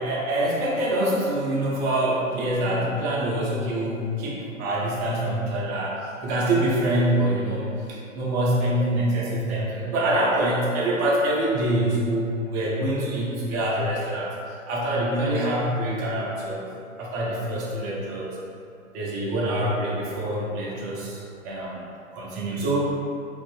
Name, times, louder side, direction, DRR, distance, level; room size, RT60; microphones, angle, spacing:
voice 1, 0.0-14.3 14.7-16.7 17.0-18.4 18.9-21.9 22.1-22.9, right 1 dB, 15° right, -5 dB, 0.3 m, -25 dB
4.1 x 2.5 x 3.5 m, 2.6 s
figure-of-eight pair, 105°, 40 cm